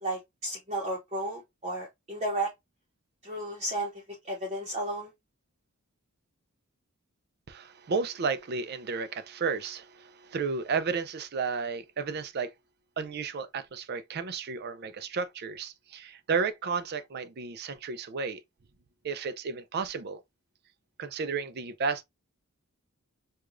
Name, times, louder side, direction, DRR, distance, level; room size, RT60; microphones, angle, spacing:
voice 1, 0.0-2.5 3.2-3.9 4.2-5.1, right 1 dB, 30° right, 0.8 m, -33 dB
voice 2, 7.5-12.5 13.0-18.4 19.0-20.2 21.0-22.0, right 5 dB, 45° right, 0.4 m, -32 dB
4.7 x 2.3 x 2.5 m
head